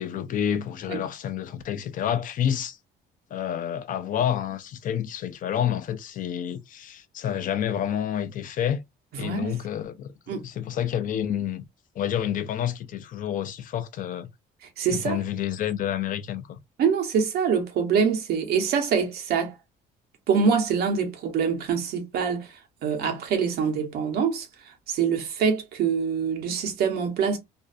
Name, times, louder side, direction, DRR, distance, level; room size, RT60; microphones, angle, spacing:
voice 1, 0.0-2.8 3.3-8.8 9.2-11.6 12.0-14.3 14.9-16.6, left 9 dB, 50° left, 0.5 m, -29 dB
voice 2, 9.1-9.5 10.3-10.4 14.8-15.2 16.8-19.6 20.3-27.4, right 6 dB, 70° right, 0.9 m, -25 dB
2.6 x 2.2 x 2.5 m
cardioid pair, 110°, 17 cm